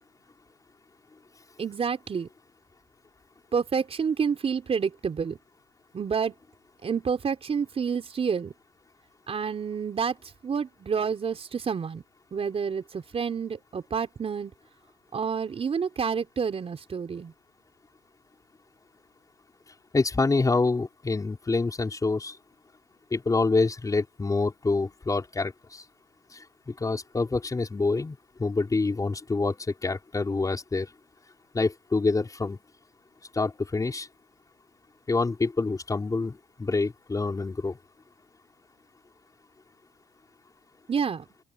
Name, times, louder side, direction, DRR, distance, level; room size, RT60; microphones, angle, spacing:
voice 1, 1.6-2.3 3.5-5.4 5.9-6.3 6.8-8.5 9.3-10.2 10.4-12.0 12.3-14.5 15.1-17.3 40.9-41.3, right 6 dB, 35° right, 4.8 m, -29 dB
voice 2, 19.9-22.4 23.1-25.8 26.3-30.9 31.5-32.6 33.3-34.1 35.1-37.8, left 3 dB, 20° left, 5.0 m, -27 dB
open air
cardioid pair, 110°, 17 cm